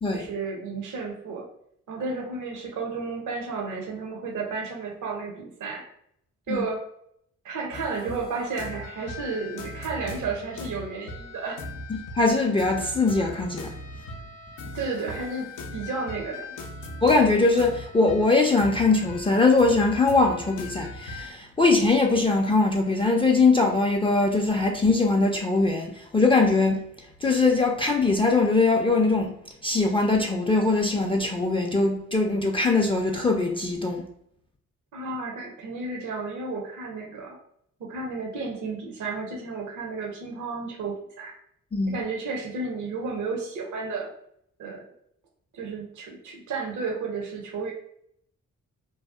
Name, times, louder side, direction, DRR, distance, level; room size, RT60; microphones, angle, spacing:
voice 1, 0.1-1.5 1.9-5.9 6.5-6.8 7.4-11.6 14.7-16.5 34.9-37.4 37.8-41.4 41.9-44.1 44.6-44.8 45.5-47.7, right 4 dB, 65° right, 0 dB, 0.6 m, -32 dB
sound 1, 7.7-21.3, left 1 dB, 70° left, 0.5 m, -39 dB
voice 2, 11.9-13.8 17.0-26.8 27.2-29.3 29.6-34.0 41.7-42.0, left 3 dB, 15° left, 1 dB, 0.3 m, -22 dB
2.7 x 2.0 x 2.3 m, 0.71 s
supercardioid pair, 50°, 32 cm